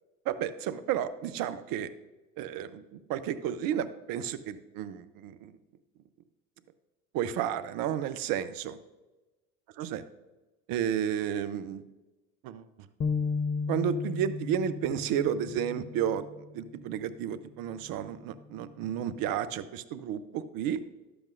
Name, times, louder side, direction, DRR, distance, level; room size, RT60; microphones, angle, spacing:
voice 1, 0.3-1.9 2.4-5.5 7.1-8.8 9.8-10.0 10.7-11.8 12.4-12.7 13.7-16.3 16.5-20.8, right 9 dB, 55° right, 13 dB, 0.7 m, -32 dB
sound 1, 13.0-16.5, left 4 dB, 25° left, 0.6 m, -34 dB
12.0 x 8.0 x 2.5 m, 1.1 s
hypercardioid pair, 70°, 42 cm